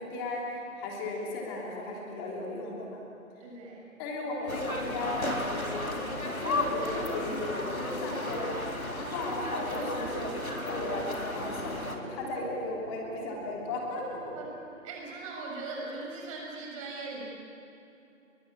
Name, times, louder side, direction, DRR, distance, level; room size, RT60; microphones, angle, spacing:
voice 1, 0.0-3.0 4.0-8.6 9.0-14.3, left 2 dB, 15° left, -2 dB, 3.2 m, -36 dB
voice 2, 3.4-4.0 8.7-9.1 14.3-14.5 14.8-17.2, right 3 dB, 25° right, -1 dB, 7.0 m, -40 dB
sound 1, 4.5-12.0, left 1 dB, 90° left, 3.8 m, -34 dB
sound 2, 6.4-14.5, right 1 dB, 45° right, 5.9 m, -47 dB
29.5 x 23.5 x 8.5 m, 2.8 s
figure-of-eight pair, 145°, 41 cm